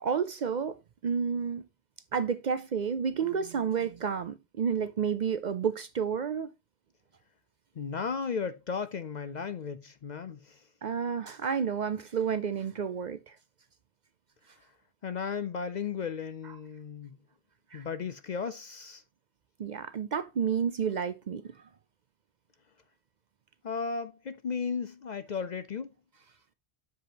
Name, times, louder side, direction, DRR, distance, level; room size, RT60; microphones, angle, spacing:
voice 1, 0.0-0.8 1.0-1.6 2.1-6.5 10.8-13.3 17.7-17.8 19.6-21.4, right 6 dB, 55° right, 0.6 m, -30 dB
voice 2, 7.8-10.7 15.0-17.2 17.7-19.0 23.6-25.9, left 5 dB, 55° left, 0.6 m, -35 dB
7.6 x 7.1 x 2.8 m
omnidirectional pair, 1.1 m